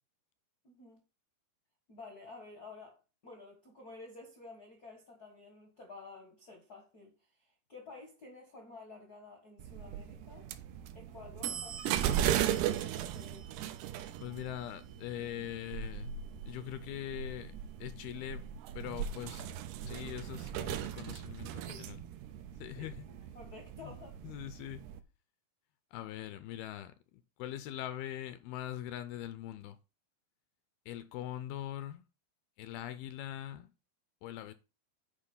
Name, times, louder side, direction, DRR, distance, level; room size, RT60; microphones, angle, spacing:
voice 1, 0.6-1.0 1.9-7.1 7.7-10.5 10.9-13.5 21.7-21.9 22.7-24.2, left 3 dB, 65° left, 0.9 m, -52 dB
sound 1, 9.6-25.0, right 10 dB, 90° right, 2.8 m, -37 dB
voice 2, 14.2-16.1 16.5-17.5 17.8-18.5 18.7-22.0 22.6-23.1 23.8-23.9 24.2-24.8 25.9-27.0 27.4-29.8 30.9-32.0 32.6-33.7 34.2-34.5, left 12 dB, 80° left, 2.3 m, -42 dB
8.9 x 5.1 x 5.4 m
omnidirectional pair, 4.7 m